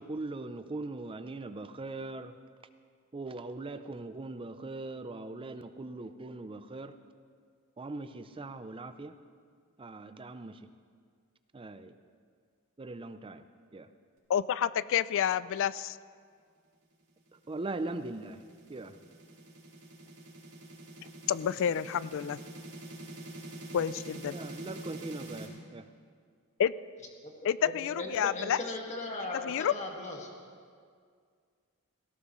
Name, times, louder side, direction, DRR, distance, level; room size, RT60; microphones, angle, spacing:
voice 1, 0.0-2.3 3.1-6.9 7.8-9.1 9.8-10.6 11.5-11.9 12.8-13.4 13.7-13.9 17.5-18.4 18.7-19.0 24.3-25.9, right 2 dB, 25° right, 11 dB, 0.5 m, -40 dB
voice 2, 14.3-16.0 21.3-22.4 23.7-24.4 26.6-26.7 27.4-28.6 29.4-29.7, left 9 dB, 60° left, 17 dB, 0.3 m, -29 dB
sound 1, 17.4-25.5, right 1 dB, 80° right, 3.9 m, -45 dB
voice 3, 27.2-30.3, left 2 dB, 30° left, 0 dB, 1.8 m, -38 dB
17.5 x 17.0 x 3.1 m, 2.1 s
head